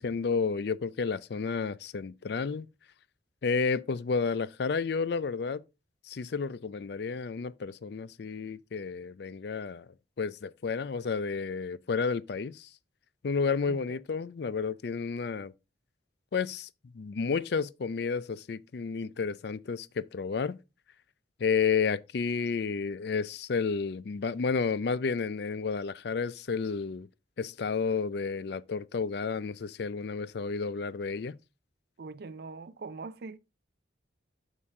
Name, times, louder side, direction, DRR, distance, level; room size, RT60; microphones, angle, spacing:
voice 1, 0.0-2.7 3.4-5.6 6.0-9.9 10.2-12.7 13.2-15.5 16.3-16.7 16.9-20.6 21.4-27.1 27.4-31.4, left 5 dB, 55° left, 0.4 m, -31 dB
voice 2, 13.7-14.0 32.0-33.4, right 4 dB, 55° right, 0.4 m, -42 dB
7.1 x 6.5 x 3.6 m
head